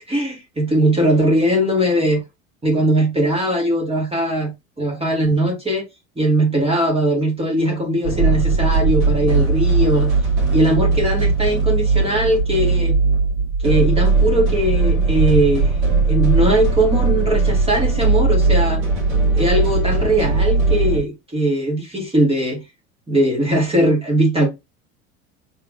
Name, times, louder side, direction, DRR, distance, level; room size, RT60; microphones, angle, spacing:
voice 1, 0.1-2.2 2.6-4.5 4.8-5.8 6.2-10.1 10.5-13.0 13.6-15.7 16.1-18.8 19.3-22.6 23.1-24.5, right 1 dB, 15° right, 1.7 m, -19 dB
sound 1, 8.0-21.0, right 4 dB, 60° right, 2.5 m, -18 dB
4.3 x 3.7 x 2.5 m
figure-of-eight pair, 75°, 41 cm